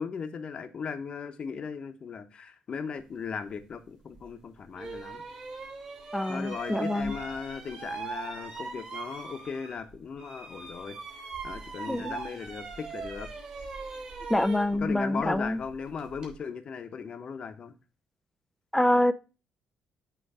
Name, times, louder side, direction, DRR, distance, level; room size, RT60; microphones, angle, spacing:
voice 1, 0.0-5.2 6.3-11.0 11.4-13.3 14.7-17.7, left 6 dB, 50° left, 0.9 m, -37 dB
sound 1, 4.1-4.2 4.7-9.9 10.2-16.3, right 4 dB, 45° right, 3.9 m, -40 dB
voice 2, 6.1-7.1 11.9-12.2 14.3-15.6 18.7-19.1, left 1 dB, 5° left, 0.4 m, -26 dB
8.0 x 3.2 x 4.8 m
cardioid pair, 100°, 2 cm